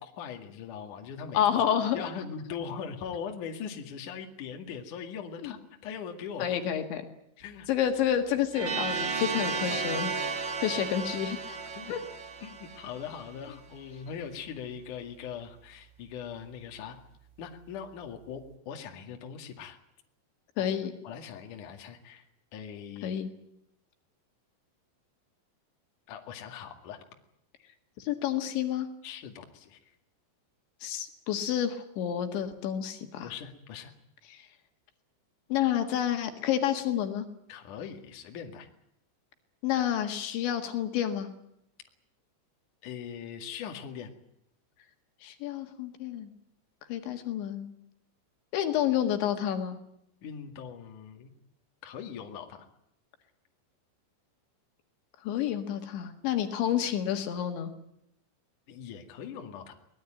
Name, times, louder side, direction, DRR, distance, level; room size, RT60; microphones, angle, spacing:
voice 1, 0.0-1.4 1.9-6.5 7.4-7.7 9.9-10.0 11.7-11.9 12.4-17.0 17.4-19.8 20.6-20.7 21.0-22.2 22.5-23.1 26.1-27.0 29.0-29.8 33.2-33.9 37.5-38.7 42.8-44.1 50.2-51.3 51.8-52.7 58.7-59.7, left 7 dB, 50° left, 4 dB, 3.2 m, -41 dB
voice 2, 1.3-2.1 5.4-5.5 6.4-7.0 7.7-10.1 10.6-11.6 11.9-12.0 20.6-20.9 23.0-23.3 28.0-28.9 30.8-33.3 34.3-34.5 35.5-37.3 39.6-41.3 45.2-46.3 46.9-47.7 48.5-49.8 55.2-57.7, left 10 dB, 75° left, 6 dB, 4.0 m, -29 dB
sound 1, 8.5-13.4, right 4 dB, 85° right, 1.0 m, -34 dB
23.0 x 19.5 x 9.0 m, 0.78 s
omnidirectional pair, 5.4 m